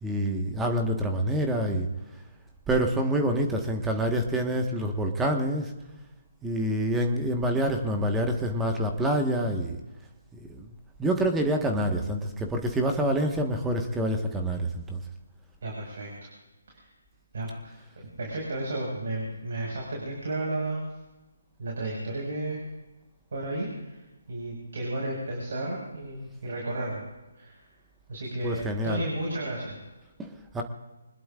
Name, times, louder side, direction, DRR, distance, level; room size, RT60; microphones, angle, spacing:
voice 1, 0.0-1.9 2.7-5.7 6.4-9.8 10.5-10.7 11.0-15.0 28.4-29.0 30.2-30.6, right 1 dB, 10° right, 4 dB, 1.5 m, -27 dB
voice 2, 15.6-16.1 16.7-16.8 17.3-20.8 21.6-22.6 23.3-24.0 24.3-27.0 27.4-27.6 28.1-29.8, right 2 dB, 60° right, -2 dB, 5.6 m, -33 dB
25.0 x 20.5 x 2.6 m, 1.1 s
figure-of-eight pair, 145°, 0 cm